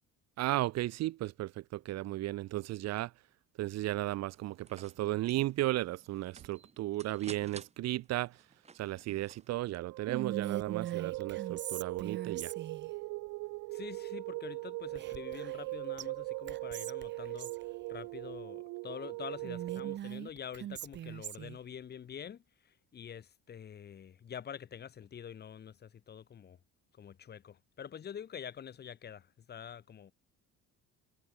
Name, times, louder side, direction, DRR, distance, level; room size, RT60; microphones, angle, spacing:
voice 1, 0.4-3.1 3.6-8.4 8.7-12.5, right 16 dB, 55° right, 1.2 m, -35 dB
sound 1, 4.3-9.6, right 5 dB, 20° right, 3.2 m, -54 dB
sound 2, 9.7-20.0, right 24 dB, 75° right, 0.6 m, -40 dB
Whispering, 10.1-12.9 14.9-15.7 16.0-16.1 16.5-17.6 19.4-21.6, right 11 dB, 35° right, 0.8 m, -41 dB
voice 2, 13.7-26.6 26.9-30.1, left 8 dB, 30° left, 3.6 m, -46 dB
cardioid pair, 165°, 31 cm